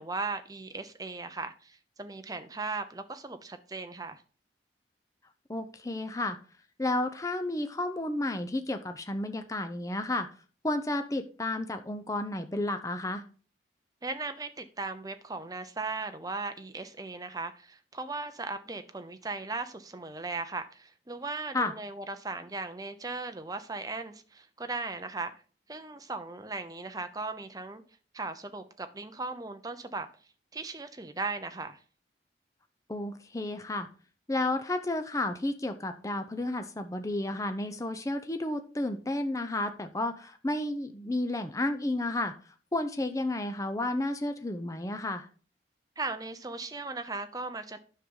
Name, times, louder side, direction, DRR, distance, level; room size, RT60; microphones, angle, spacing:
voice 1, 0.0-4.2 14.0-25.3 25.7-27.8 28.1-30.1 30.5-31.8 46.0-47.8, right 3 dB, 20° right, 0.7 m, -37 dB
voice 2, 5.5-6.4 6.8-10.3 10.6-13.2 21.5-21.7 32.9-33.9 34.3-45.3, left 2 dB, 20° left, 0.6 m, -32 dB
9.8 x 6.6 x 3.8 m
head